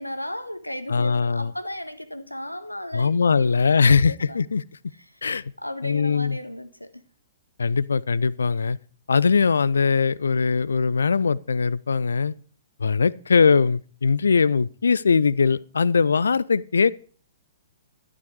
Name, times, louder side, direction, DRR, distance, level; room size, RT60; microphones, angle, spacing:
voice 1, 0.0-4.4 5.6-6.9, left 1 dB, 85° left, 1.4 m, -35 dB
voice 2, 0.9-1.5 2.9-4.6 5.2-5.4 5.8-6.4 7.6-8.8 9.1-12.3 12.8-16.9, left 5 dB, 65° left, 0.5 m, -21 dB
12.5 x 11.5 x 4.8 m
figure-of-eight pair, 115°, 0 cm